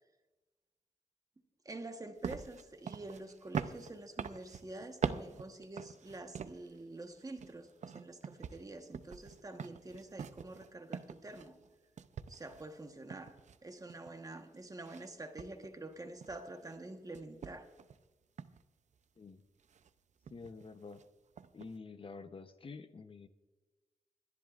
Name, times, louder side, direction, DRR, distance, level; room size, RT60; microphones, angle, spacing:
voice 1, 1.6-11.6 12.3-13.3 13.6-17.7, right 2 dB, 30° right, 5 dB, 1.2 m, -47 dB
sound 1, 2.2-6.8 7.2-11.7 12.0-14.3 14.8-15.1 15.4-16.8 17.1-18.0 18.4-18.6 19.6-19.9 20.2-20.7 20.9-21.0 21.4-21.7, right 6 dB, 70° right, 0.6 m, -43 dB
voice 2, 20.3-21.0 21.5-23.3, left 4 dB, 45° left, 10 dB, 0.7 m, -48 dB
27.0 x 10.5 x 2.5 m, 1.2 s
wide cardioid pair, 110°, 13 cm